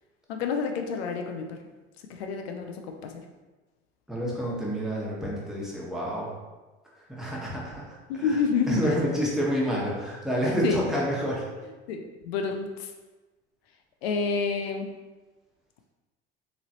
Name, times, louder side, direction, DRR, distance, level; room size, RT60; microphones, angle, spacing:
voice 1, 0.3-1.6 2.1-3.2 8.1-9.0 10.6-10.8 11.9-12.9 14.0-14.9, left 5 dB, 85° left, 5 dB, 0.5 m, -29 dB
voice 2, 4.1-6.3 7.1-8.4 8.7-11.4, equal, ahead, -5 dB, 1.2 m, -29 dB
3.9 x 3.0 x 2.9 m, 1.2 s
hypercardioid pair, 75°, 31 cm